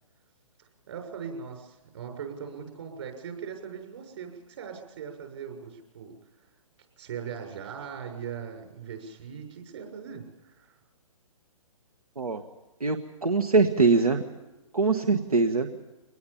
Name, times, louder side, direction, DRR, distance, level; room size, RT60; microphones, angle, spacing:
voice 1, 0.9-6.2 7.0-10.7, right 7 dB, 50° right, 4 dB, 6.6 m, -40 dB
voice 2, 12.8-14.2 14.7-15.7, right 4 dB, 90° right, 7 dB, 1.6 m, -23 dB
24.5 x 19.5 x 7.2 m, 1.1 s
hypercardioid pair, 135°, 18 cm